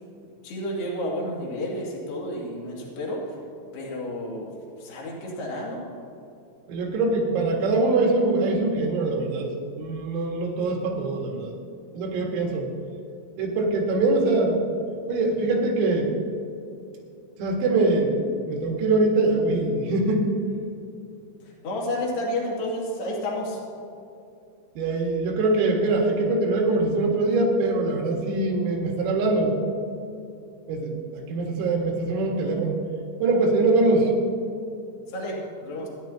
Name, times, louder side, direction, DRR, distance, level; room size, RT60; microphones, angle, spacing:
voice 1, 0.4-3.4 3.7-4.5 4.8-5.8 21.4-23.6 35.1-35.9, left 1 dB, 50° left, -4 dB, 3.9 m, -31 dB
voice 2, 6.7-9.5 9.8-11.5 11.9-12.7 13.4-14.6 15.1-16.1 17.4-20.3 24.8-29.5 30.7-32.8 33.2-34.1, right 2 dB, 85° right, -1 dB, 4.6 m, -23 dB
27.5 x 11.0 x 2.9 m, 2.6 s
omnidirectional pair, 5.9 m